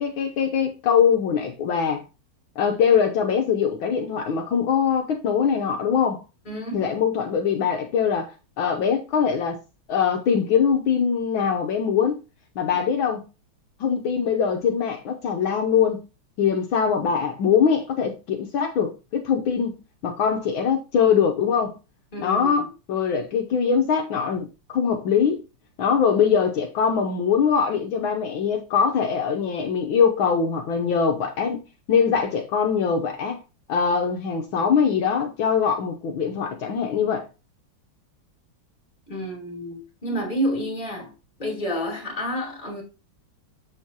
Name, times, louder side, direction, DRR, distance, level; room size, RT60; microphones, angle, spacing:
voice 1, 0.0-2.0 2.6-6.2 6.7-9.6 9.9-12.2 12.5-13.2 13.8-16.0 16.4-21.8 22.2-25.4 25.8-31.6 31.9-33.4 33.7-37.3, left 7 dB, 70° left, 1.6 m, -22 dB
voice 2, 6.5-6.9 12.7-12.8 22.1-22.7 39.1-41.1 41.4-42.8, equal, 20° left, 2.4 m, -29 dB
7.3 x 6.9 x 2.9 m
omnidirectional pair, 2.3 m